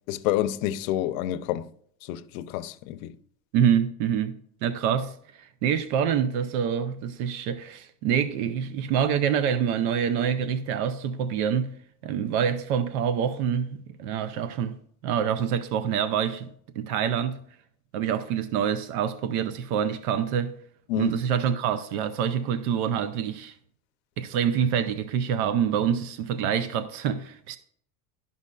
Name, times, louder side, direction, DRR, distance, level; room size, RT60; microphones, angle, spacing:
voice 1, 0.1-1.7 2.1-3.2 20.9-21.1, left 13 dB, 65° left, 0.6 m, -28 dB
voice 2, 3.5-11.7 12.0-14.8 15.0-16.5 16.8-17.4 17.9-20.5 21.0-23.5 24.2-27.6, right 8 dB, 80° right, 0.7 m, -26 dB
12.0 x 5.4 x 2.3 m
cardioid pair, 170°, 44 cm